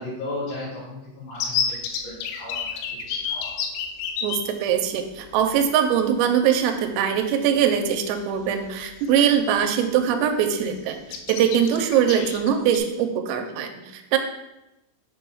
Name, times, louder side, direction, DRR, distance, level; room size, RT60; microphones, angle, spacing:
voice 1, 0.0-2.6 3.0-3.6, left 2 dB, 70° left, -11 dB, 4.6 m, -35 dB
sound 1, 1.4-4.4 5.4-5.5 5.8-5.9 7.6-7.7 8.1-8.4 8.8-9.5 9.9-10.0 10.3-10.7 11.1-12.8, left 7 dB, 85° left, 3.2 m, -29 dB
voice 2, 4.2-11.0 11.3-14.2, right 8 dB, 85° right, 5 dB, 3.2 m, -22 dB
9.1 x 6.4 x 2.3 m, 0.96 s
omnidirectional pair, 5.9 m